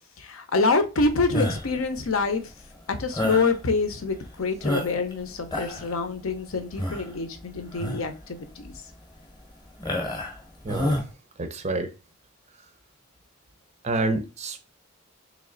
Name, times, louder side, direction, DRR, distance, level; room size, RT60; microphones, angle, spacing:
voice 1, 0.2-2.4 3.0-8.7, left 3 dB, 70° left, 0.7 m, -26 dB
sound 1, 1.3-1.8 3.1-3.5 4.1-4.2 4.6-5.1 5.4-5.9 6.8-7.1 7.7-8.1 8.6-8.8 9.8-10.4 10.7-11.1, left 1 dB, 20° left, 0.8 m, -28 dB
voice 2, 10.6-11.0 11.4-11.9 13.8-14.6, right 2 dB, 30° right, 0.5 m, -28 dB
3.2 x 3.1 x 3.8 m
head